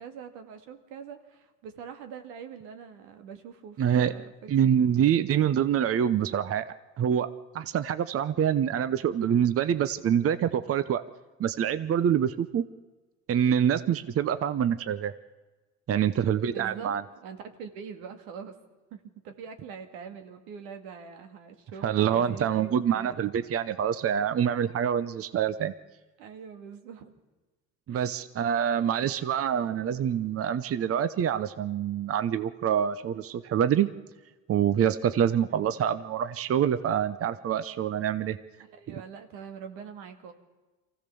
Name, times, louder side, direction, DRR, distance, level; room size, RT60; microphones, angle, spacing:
voice 1, 0.0-4.3 4.6-5.1 16.5-16.9 17.2-18.6 18.9-23.2 26.2-27.1 27.9-28.1 35.5-35.7 38.6-40.3, right 6 dB, 85° right, 7 dB, 2.0 m, -44 dB
voice 2, 3.8-4.1 4.5-6.7 7.0-7.3 7.5-11.0 11.4-12.6 13.3-15.1 15.9-17.0 21.8-25.7 27.9-33.9 34.5-38.4 38.9-39.0, right 9 dB, 40° right, 13 dB, 0.8 m, -26 dB
24.0 x 15.5 x 7.0 m, 1.2 s
supercardioid pair, 85°, 34 cm